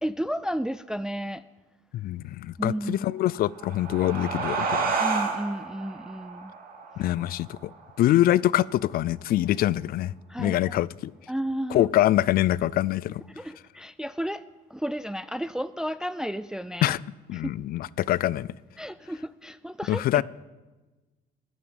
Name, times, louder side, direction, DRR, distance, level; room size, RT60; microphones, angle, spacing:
voice 1, 0.0-1.4 2.6-3.1 5.0-6.5 10.3-10.8 11.3-11.9 13.3-14.4 14.7-16.9 17.3-17.5 18.8-20.2, equal, 5° right, 0.4 m, -32 dB
voice 2, 1.9-4.9 7.0-7.6 8.0-10.1 10.4-11.1 11.7-13.2 16.8-17.0 17.3-18.5 19.9-20.2, left 14 dB, 60° left, 0.4 m, -24 dB
sound 1, 3.3-8.5, right 5 dB, 55° right, 3.0 m, -31 dB
14.0 x 9.8 x 8.8 m
cardioid pair, 110°, 17 cm